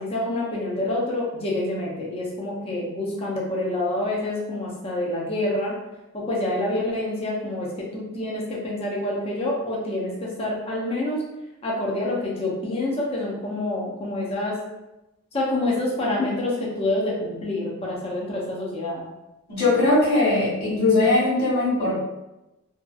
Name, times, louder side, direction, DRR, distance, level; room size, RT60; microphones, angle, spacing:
voice 1, 0.0-5.7 6.1-11.2 11.6-14.6 15.3-19.0, left 1 dB, 25° left, -4 dB, 0.5 m, -27 dB
voice 2, 19.5-21.9, left 2 dB, 40° left, -9 dB, 1.3 m, -20 dB
2.7 x 2.3 x 2.3 m, 0.98 s
head